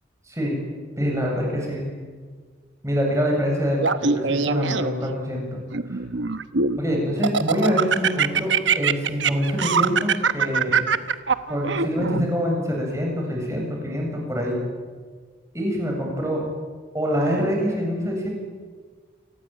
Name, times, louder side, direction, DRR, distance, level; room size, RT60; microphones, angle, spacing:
voice 1, 0.3-0.6 1.0-1.8 2.8-6.0 6.8-10.8 11.5-14.6 15.5-16.5 16.9-18.3, equal, 15° right, 0 dB, 7.7 m, -25 dB
Laughter, 3.8-5.1 5.7-6.8 7.2-12.3, right 5 dB, 75° right, 1.1 m, -22 dB
28.0 x 20.0 x 9.3 m, 1.6 s
head